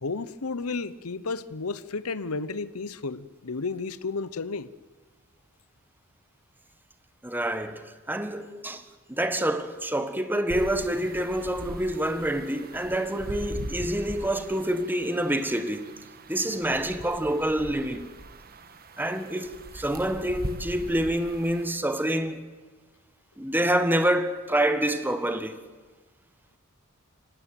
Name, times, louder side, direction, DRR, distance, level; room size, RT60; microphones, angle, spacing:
voice 1, 0.0-4.7, left 4 dB, 80° left, 1.0 m, -32 dB
voice 2, 7.2-7.8 8.1-8.8 9.1-15.9 16.3-18.1 19.0-22.4 23.4-25.6, right 1 dB, 10° right, 1.5 m, -27 dB
sound 1, 10.5-21.7, right 1 dB, 45° right, 1.5 m, -41 dB
24.5 x 18.0 x 9.3 m
head